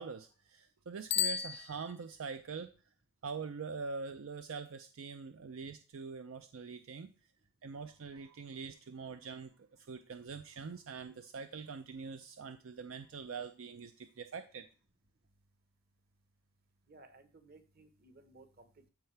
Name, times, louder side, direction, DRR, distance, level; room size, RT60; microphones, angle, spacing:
voice 1, 0.0-2.7 3.2-7.1 7.6-14.6, right 5 dB, 70° right, 9 dB, 0.5 m, -44 dB
Bicycle bell, 1.0-2.4, left 9 dB, 50° left, 0.4 m, -35 dB
voice 2, 16.9-18.9, right 2 dB, 45° right, 7 dB, 1.2 m, -59 dB
13.5 x 4.5 x 3.3 m, 0.36 s
head